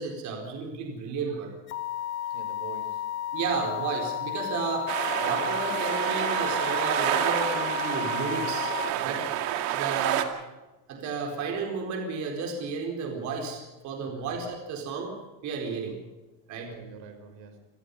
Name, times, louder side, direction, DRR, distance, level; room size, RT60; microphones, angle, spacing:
voice 1, 0.0-1.6 3.3-4.9 5.2-8.7 9.0-9.2 9.7-10.3 10.9-15.1 15.4-16.0 16.5-16.7, right 5 dB, 35° right, 2 dB, 4.4 m, -32 dB
sound 1, 1.7-8.9, left 11 dB, 25° left, 0.6 m, -33 dB
voice 2, 2.3-3.1 8.9-9.3 14.0-14.3 16.7-17.7, right 7 dB, 80° right, 7 dB, 5.4 m, -45 dB
sound 2, 4.9-10.2, right 11 dB, 55° right, 2.3 m, -28 dB
28.0 x 18.5 x 5.5 m, 1.1 s
cardioid pair, 175°, 50 cm